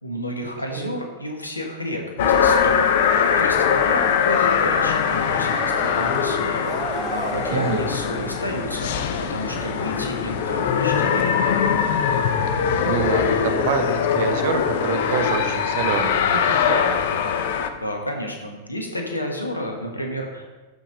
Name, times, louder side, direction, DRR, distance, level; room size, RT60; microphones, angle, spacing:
voice 1, 0.0-2.8 3.1-11.5 17.8-20.4, left 1 dB, 85° left, 2 dB, 1.5 m, -31 dB
sound 1, 2.2-17.7, left 7 dB, 55° left, 0.7 m, -22 dB
sound 2, 3.7-9.5 9.9-10.0, right 5 dB, 20° right, 0.6 m, -35 dB
sound 3, 7.3-14.0, left 1 dB, 30° left, 2.9 m, -36 dB
voice 2, 7.5-7.8 12.8-17.1, right 7 dB, 55° right, 7 dB, 0.9 m, -27 dB
13.0 x 5.7 x 4.0 m, 1.2 s
figure-of-eight pair, 90°, 0 cm